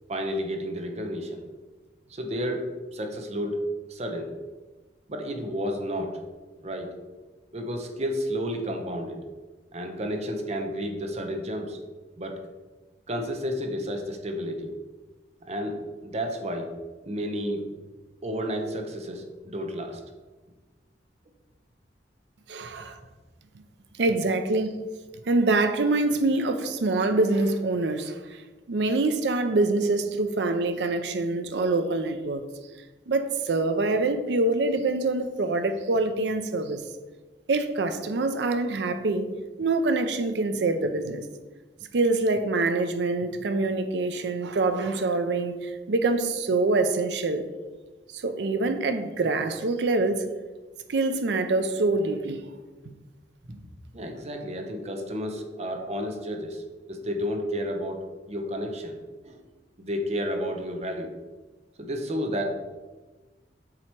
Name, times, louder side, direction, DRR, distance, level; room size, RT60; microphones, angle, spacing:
voice 1, 0.1-1.4 2.1-4.3 5.1-6.2 6.6-6.9 7.5-9.2 9.7-11.8 12.2-12.4 13.1-14.7 15.5-16.8 17.0-17.7 18.2-20.0 53.9-58.0 58.3-59.0 59.2-59.4 59.8-61.1 61.8-62.5, equal, 40° right, 4 dB, 0.7 m, -31 dB
voice 2, 22.5-23.0 24.0-24.7 25.3-28.4 28.7-32.4 33.1-36.9 37.5-39.3 39.6-41.2 41.9-47.5 48.1-50.2 50.9-52.4, right 2 dB, 70° right, 9 dB, 0.5 m, -25 dB
7.5 x 2.9 x 4.5 m, 1.2 s
head